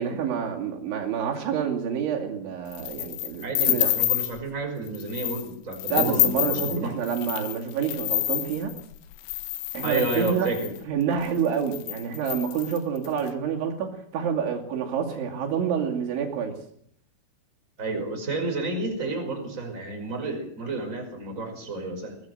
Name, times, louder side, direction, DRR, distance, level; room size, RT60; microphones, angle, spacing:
voice 1, 0.0-3.9 5.9-8.7 9.7-10.5 10.9-16.6, right 7 dB, 70° right, 1 dB, 4.8 m, -28 dB
sound 1, 2.7-4.4 4.9-5.4 5.7-10.8 11.4-11.5 11.7-13.2, left 15 dB, 75° left, 3.4 m, -28 dB
voice 2, 3.4-7.0 9.8-10.7 17.8-22.1, right 2 dB, 15° right, 4 dB, 5.1 m, -30 dB
22.5 x 17.0 x 7.8 m, 0.65 s
omnidirectional pair, 5.6 m